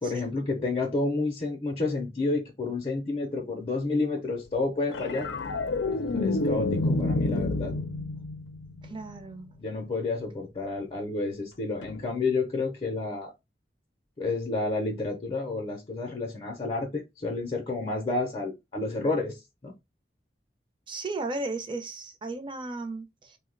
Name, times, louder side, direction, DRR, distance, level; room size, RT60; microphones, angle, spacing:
voice 1, 0.0-5.3 5.8-7.7 9.6-13.3 14.2-19.7, left 3 dB, 30° left, 0.6 m, -30 dB
sound 1, 4.9-9.4 11.8-12.0, left 2 dB, 80° left, 0.5 m, -29 dB
voice 2, 8.8-9.5 20.9-23.4, right 3 dB, 30° right, 0.6 m, -35 dB
2.7 x 2.1 x 3.8 m
head